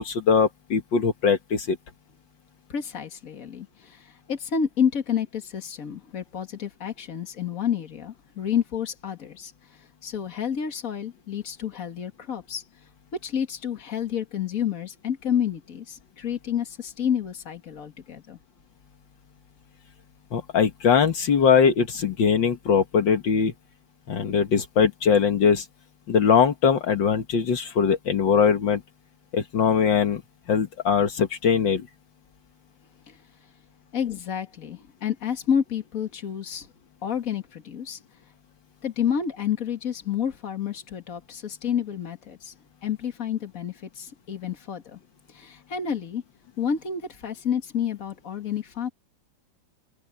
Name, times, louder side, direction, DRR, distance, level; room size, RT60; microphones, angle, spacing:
voice 1, 0.0-1.8 20.3-23.5 24.1-25.6 26.1-28.8 29.3-30.2 30.5-31.9, left 6 dB, 75° left, 2.2 m, -21 dB
voice 2, 2.7-9.5 10.0-12.6 13.2-18.4 33.1-33.2 33.9-36.7 37.0-38.0 38.8-42.5 42.8-45.0 45.3-46.2 46.6-48.9, left 8 dB, 45° left, 2.3 m, -29 dB
open air
omnidirectional pair, 2.1 m